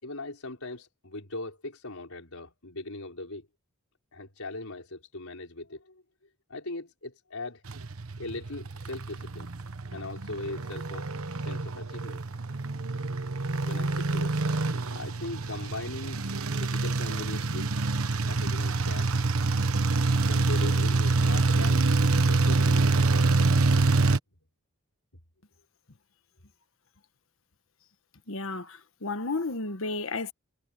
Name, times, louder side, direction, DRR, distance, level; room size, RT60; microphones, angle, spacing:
voice 1, 0.0-3.5 4.1-6.0 6.5-7.6 8.2-9.5 9.9-11.1 11.4-12.2 13.6-14.3 14.9-17.7 18.3-19.2 20.3-22.0 22.3-23.0, left 2 dB, 90° left, 5.0 m, -40 dB
sound 1, 7.7-24.2, right 3 dB, 85° right, 1.2 m, -26 dB
voice 2, 28.3-30.3, left 3 dB, 70° left, 1.4 m, -32 dB
head